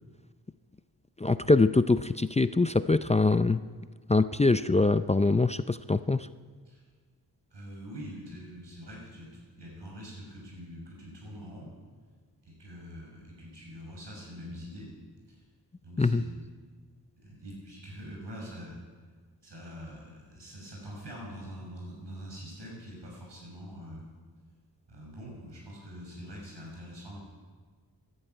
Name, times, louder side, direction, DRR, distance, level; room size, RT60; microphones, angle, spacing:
voice 1, 1.2-3.6 4.1-6.3 16.0-16.2, left 3 dB, 15° left, 12 dB, 0.4 m, -23 dB
voice 2, 7.5-11.7 12.4-14.9 15.3-15.4 15.8-16.5 17.2-18.8 19.4-24.1 24.9-27.2, equal, 85° right, -2 dB, 6.3 m, -44 dB
14.0 x 11.0 x 9.2 m, 1.5 s
wide cardioid pair, 65°, 41 cm